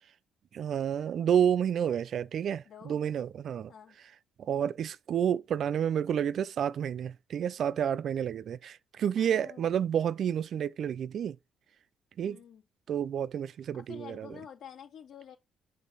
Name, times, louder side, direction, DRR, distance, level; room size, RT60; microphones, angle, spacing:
voice 1, 0.5-3.7 4.4-11.4 12.2-12.4 12.9-14.3, right 9 dB, 65° right, 0.4 m, -30 dB
voice 2, 2.6-3.1 3.7-4.0 9.1-9.9 12.2-12.6 13.7-15.4, left 8 dB, 70° left, 2.6 m, -49 dB
7.4 x 3.8 x 4.0 m
cardioid pair, 90°, 0 cm